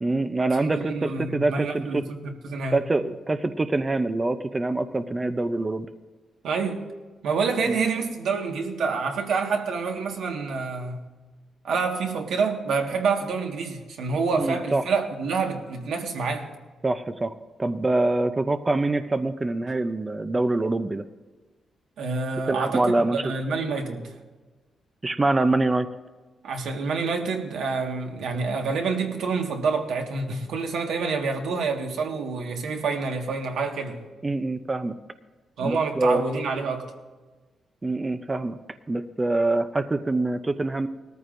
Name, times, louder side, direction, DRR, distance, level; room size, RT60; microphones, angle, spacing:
voice 1, 0.0-2.0 2.7-5.9 7.6-7.8 14.3-14.8 16.8-17.3 17.6-21.0 22.5-23.2 25.0-25.9 34.2-34.9 35.6-36.2 37.8-38.6 38.9-40.9, right 2 dB, 20° right, 0.5 m, -25 dB
voice 2, 0.6-2.8 6.4-6.8 7.2-11.1 11.6-16.5 22.0-24.1 26.4-34.0 35.6-36.9, right 4 dB, 90° right, 1.6 m, -27 dB
20.0 x 14.0 x 2.6 m
wide cardioid pair, 155°, 0 cm